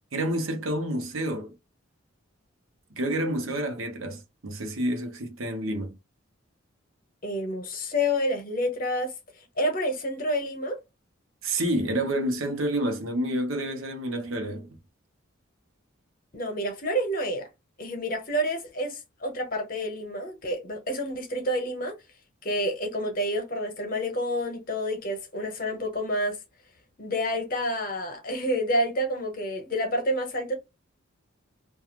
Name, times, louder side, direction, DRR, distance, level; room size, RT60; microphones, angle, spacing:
voice 1, 0.1-1.5 3.0-6.0 11.4-14.8, right 1 dB, 75° right, 0.7 m, -29 dB
voice 2, 7.2-9.1 9.6-10.8 16.3-17.5 17.8-22.0 22.4-26.4 27.0-30.5, equal, 40° left, 0.8 m, -29 dB
2.4 x 2.4 x 2.8 m
head